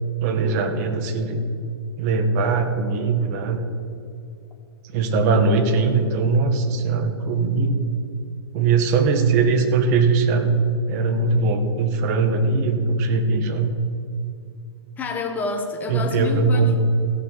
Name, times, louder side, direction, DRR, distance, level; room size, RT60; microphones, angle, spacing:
voice 1, 0.2-1.4 2.0-3.7 4.9-7.8 8.5-10.6 10.9-13.7 15.9-16.8, right 4 dB, 35° right, 7 dB, 1.3 m, -20 dB
voice 2, 15.0-16.8, left 3 dB, 10° left, 3 dB, 1.2 m, -28 dB
14.5 x 5.9 x 7.4 m, 2.5 s
hypercardioid pair, 155°, 14 cm